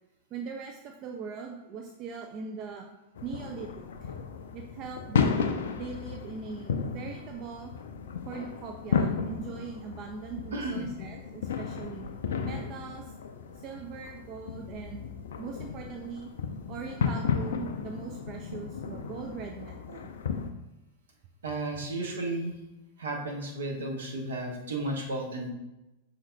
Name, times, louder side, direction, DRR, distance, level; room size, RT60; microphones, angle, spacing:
voice 1, 0.3-2.9 3.2-4.1 4.5-5.3 5.8-7.7 8.2-12.1 12.4-13.1 13.5-15.1 15.4-16.3 16.7-20.1, right 5 dB, 35° right, 2 dB, 0.4 m, -41 dB
sound 1, 3.2-20.5, left 6 dB, 65° left, 0.3 m, -34 dB
voice 2, 10.5-10.9 21.4-22.5 23.0-25.5, right 2 dB, 65° right, 1 dB, 0.8 m, -33 dB
5.6 x 3.8 x 2.2 m, 0.96 s
figure-of-eight pair, 90°, 0 cm